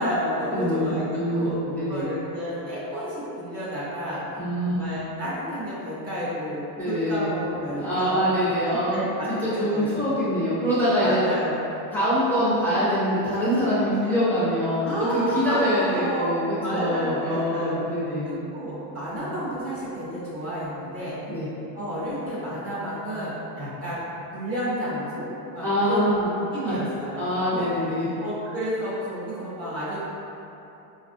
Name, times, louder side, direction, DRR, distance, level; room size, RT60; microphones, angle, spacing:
voice 1, 0.0-1.6 1.9-4.2 4.6-8.3 8.7-10.1 11.0-11.8 14.8-17.8 18.3-21.2 21.7-24.1 24.3-26.2 26.5-27.7 28.2-30.0, equal, 35° right, -9 dB, 0.7 m, -31 dB
voice 2, 0.5-2.1 4.4-4.8 6.8-7.3 7.7-9.0 9.3-11.2 11.9-18.3 19.2-19.3 21.3-21.5 23.6-23.7 25.6-26.3 26.6-26.8 27.2-28.1, equal, 5° left, -12 dB, 0.4 m, -24 dB
4.1 x 2.4 x 2.4 m, 2.9 s
cardioid pair, 160°, 45 cm